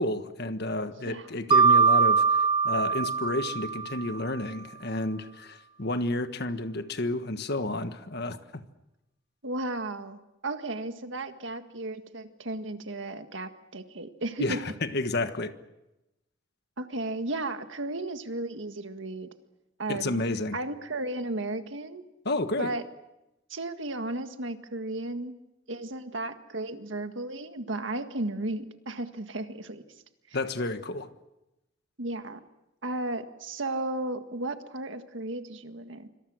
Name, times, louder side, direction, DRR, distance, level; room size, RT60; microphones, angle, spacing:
voice 1, 0.0-8.6 14.4-15.5 19.9-20.6 22.2-22.7 30.3-31.1, left 2 dB, 55° left, 9 dB, 1.5 m, -31 dB
Mallet percussion, 1.5-4.3, right 5 dB, 25° right, 0.9 m, -22 dB
voice 2, 9.4-14.6 16.8-19.3 19.8-20.2 20.5-22.0 22.6-22.8 23.5-25.3 25.7-29.8 30.3-30.4 32.0-32.4 32.8-36.1, right 2 dB, 65° right, 8 dB, 1.8 m, -34 dB
26.0 x 25.5 x 6.4 m, 0.95 s
head